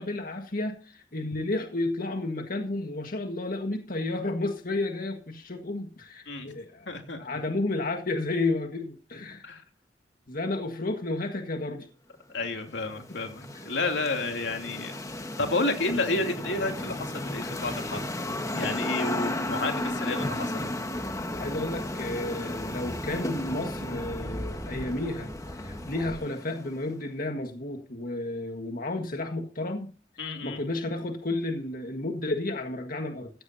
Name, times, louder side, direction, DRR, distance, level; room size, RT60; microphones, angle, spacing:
voice 1, 0.0-6.9 7.2-9.5 10.3-11.9 21.4-29.9 30.2-33.3, left 2 dB, 55° left, 1.7 m, -32 dB
voice 2, 6.9-7.2 9.4-9.6 12.3-15.0 15.4-18.0 18.5-20.7 30.2-30.6, left 2 dB, 90° left, 2.9 m, -30 dB
sound 1, 12.4-26.9, left 1 dB, 20° left, 1.5 m, -34 dB
sound 2, 20.9-26.2, equal, 25° right, 3.9 m, -42 dB
15.5 x 15.5 x 2.8 m
head